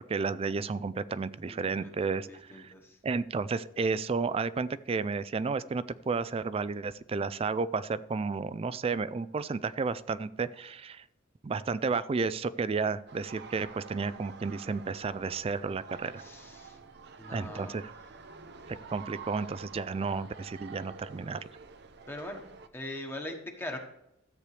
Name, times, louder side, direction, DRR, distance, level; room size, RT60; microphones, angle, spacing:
voice 1, 0.0-2.7 3.0-11.0 11.4-16.2 17.3-17.8 18.7-21.4, right 4 dB, 30° right, 16 dB, 0.3 m, -32 dB
voice 2, 1.4-3.0 16.1-16.8 17.2-17.9 22.1-22.4 22.7-23.8, left 1 dB, 10° left, 2 dB, 1.2 m, -42 dB
sound 1, 13.1-22.7, right 5 dB, 55° right, 0.7 m, -48 dB
13.5 x 8.3 x 3.3 m, 0.83 s
head